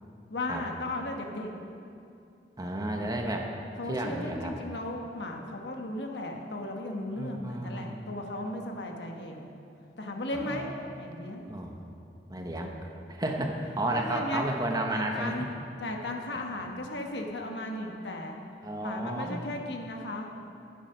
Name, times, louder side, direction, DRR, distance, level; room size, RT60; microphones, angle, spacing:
voice 1, 0.3-1.5 3.8-9.5 10.0-11.5 13.9-14.5 14.9-15.5 15.8-18.3 18.8-20.3, left 1 dB, 70° left, 2 dB, 1.2 m, -36 dB
voice 2, 2.6-3.5 3.9-4.5 7.2-8.1 10.3-10.7 11.5-11.8 12.3-12.7 13.1-15.5 18.6-19.4, right 1 dB, 20° right, 2 dB, 1.0 m, -32 dB
11.0 x 9.3 x 5.7 m, 2.6 s
head